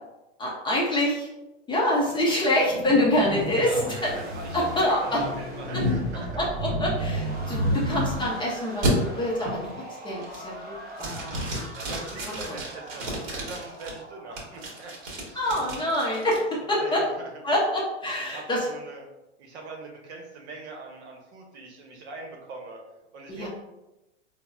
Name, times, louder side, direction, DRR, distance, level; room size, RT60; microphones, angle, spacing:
voice 1, 0.4-1.3 1.7-4.1 4.5-5.2 5.7-5.8 6.1-9.6 10.0-11.3 12.3-12.6 15.3-17.0 17.4-18.7 23.3-23.5, left 1 dB, 15° left, -5 dB, 0.5 m, -26 dB
sound 1, 2.0-8.3 8.8-8.9 9.4-9.8 10.2-10.6 11.0-13.9 14.4-16.4, equal, 40° right, 1.1 m, -31 dB
voice 2, 3.6-6.5 7.4-7.9 11.7-14.9 15.2-15.4 16.1-16.2 16.6-17.3 18.0-19.1 19.4-22.8 23.1-23.5, right 3 dB, 65° right, 1 dB, 0.9 m, -41 dB
sound 2, 4.0-16.0, right 2 dB, 25° right, 0.6 m, -42 dB
3.9 x 2.0 x 2.3 m, 0.97 s
hypercardioid pair, 115°, 37 cm